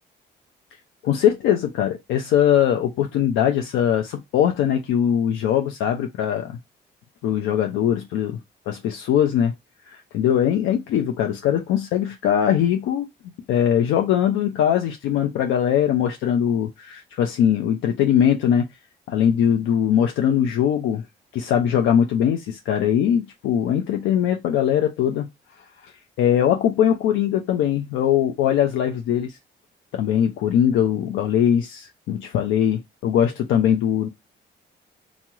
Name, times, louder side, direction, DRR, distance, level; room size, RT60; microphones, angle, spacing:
voice 1, 1.0-6.6 7.2-8.4 8.7-9.5 9.9-13.1 13.5-18.6 19.1-21.0 21.3-25.3 26.2-29.3 29.9-34.1, left 9 dB, 90° left, 0.4 m, -21 dB
2.9 x 2.0 x 3.5 m
cardioid pair, 90°, 20 cm